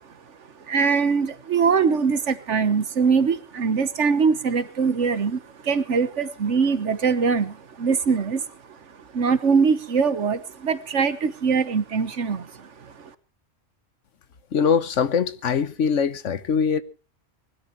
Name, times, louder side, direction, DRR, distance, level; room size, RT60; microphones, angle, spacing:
voice 1, 0.7-8.5 9.1-13.1, right 5 dB, 70° right, 1.6 m, -22 dB
voice 2, 14.5-16.8, left 6 dB, 75° left, 1.4 m, -22 dB
20.5 x 12.5 x 4.5 m
omnidirectional pair, 1.3 m